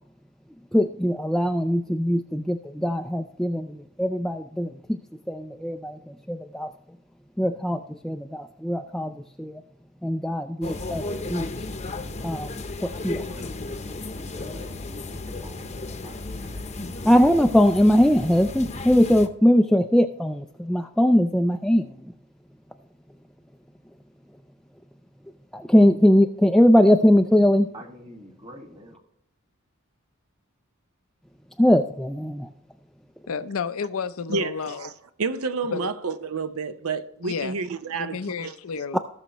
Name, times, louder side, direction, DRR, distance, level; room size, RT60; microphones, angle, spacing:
voice 1, 0.7-5.0 5.3-6.7 7.4-9.6 10.0-11.5 12.2-12.5 12.8-13.2 17.0-22.1 25.5-27.7 31.6-32.5, equal, ahead, 0.3 m, -21 dB
sound 1, 10.6-19.3, left 2 dB, 30° left, 0.8 m, -34 dB
voice 2, 13.2-16.7 27.7-29.0, equal, 25° right, 1.7 m, -47 dB
voice 3, 33.3-34.9 35.7-35.9 37.2-37.6 37.9-39.0, left 5 dB, 70° left, 0.6 m, -31 dB
voice 4, 34.3-34.9 35.2-38.6, right 4 dB, 80° right, 0.7 m, -30 dB
18.5 x 6.3 x 3.0 m
head